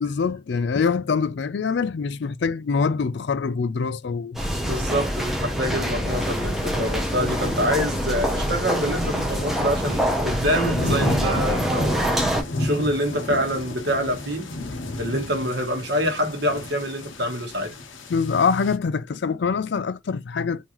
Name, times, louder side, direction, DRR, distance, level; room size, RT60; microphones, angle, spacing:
voice 1, 0.0-4.4 18.1-20.7, left 5 dB, 60° left, 0.4 m, -24 dB
sound 1, 4.3-12.4, equal, ahead, 0.6 m, -25 dB
voice 2, 4.4-12.2 12.6-14.5 15.0-17.7, equal, 55° right, 1.2 m, -26 dB
sound 2, 6.1-18.8, left 2 dB, 75° left, 0.8 m, -33 dB
3.7 x 2.7 x 3.0 m
head